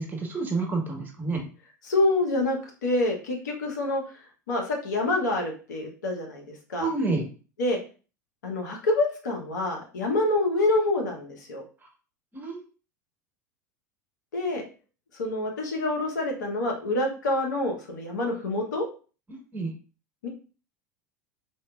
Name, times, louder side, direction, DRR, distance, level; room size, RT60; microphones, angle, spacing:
voice 1, 0.0-1.4 6.8-7.2 12.3-12.6 19.3-19.7, right 3 dB, 20° right, 1 dB, 1.1 m, -29 dB
voice 2, 1.8-4.0 4.5-6.4 6.7-6.9 7.6-7.8 8.4-11.6 14.3-14.6 15.2-18.9 20.2-20.3, left 2 dB, 80° left, 1 dB, 0.9 m, -26 dB
4.3 x 2.3 x 2.2 m, 0.36 s
hypercardioid pair, 80°, 10 cm